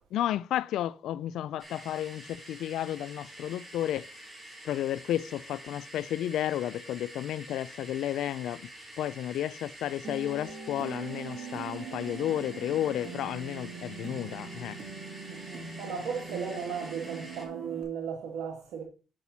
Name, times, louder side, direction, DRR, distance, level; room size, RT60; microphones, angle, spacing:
voice 1, 0.1-4.1 4.6-8.7 9.0-14.8, left 12 dB, 80° left, 0.4 m, -32 dB
sound 1, 1.6-17.5, right 1 dB, 30° right, 3.1 m, -48 dB
sound 2, 10.0-17.8, right 6 dB, 60° right, 2.9 m, -42 dB
voice 2, 15.2-18.8, right 6 dB, 85° right, 1.9 m, -36 dB
8.9 x 5.9 x 4.1 m
cardioid pair, 90°, 0 cm